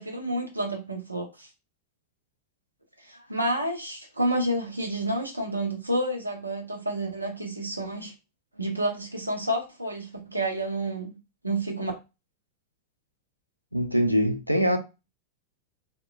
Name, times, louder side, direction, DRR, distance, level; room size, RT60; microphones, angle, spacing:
voice 1, 0.0-1.5 3.3-8.1 8.6-11.2 11.4-11.9, right 1 dB, 85° right, 0.6 m, -29 dB
voice 2, 13.7-14.8, equal, 90° left, 0.4 m, -23 dB
3.0 x 2.1 x 2.2 m
figure-of-eight pair, 90°, 0 cm